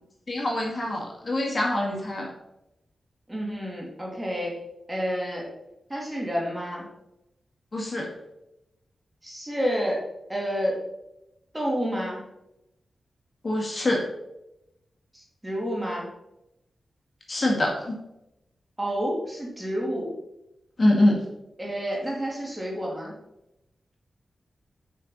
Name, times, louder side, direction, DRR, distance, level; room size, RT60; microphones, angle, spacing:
voice 1, 0.3-2.3 7.7-8.1 13.4-14.0 17.3-18.0 20.8-21.2, left 1 dB, 40° left, -1 dB, 1.9 m, -24 dB
voice 2, 3.3-4.6 4.9-5.5 5.9-6.9 9.2-10.0 10.3-10.8 11.5-12.2 15.1-16.1 18.8-20.1 21.6-23.1, equal, 15° right, -2 dB, 2.8 m, -29 dB
6.6 x 5.6 x 5.4 m, 0.87 s
cardioid pair, 75°, 0 cm